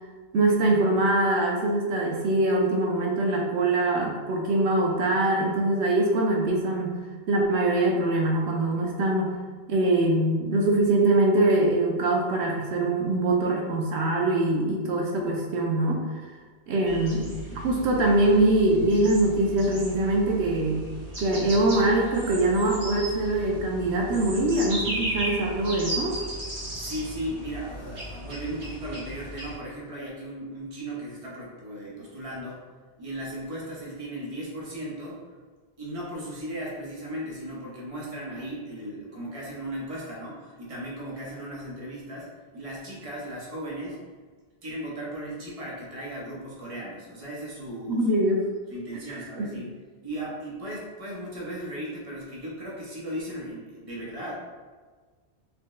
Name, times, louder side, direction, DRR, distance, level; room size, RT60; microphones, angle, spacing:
voice 1, 0.3-7.0 7.3-9.3 9.7-16.2 16.7-20.9 21.2-26.2 47.9-48.4 49.1-49.5, right 2 dB, 85° right, 0 dB, 0.9 m, -23 dB
sound 1, 16.8-29.5, right 1 dB, 50° right, 1.3 m, -36 dB
voice 2, 26.8-32.6 33.0-35.2 35.8-44.0 44.6-48.3 48.7-49.7 50.0-54.3, right 1 dB, 35° right, -5 dB, 0.9 m, -36 dB
4.6 x 2.1 x 3.0 m, 1.5 s
omnidirectional pair, 1.1 m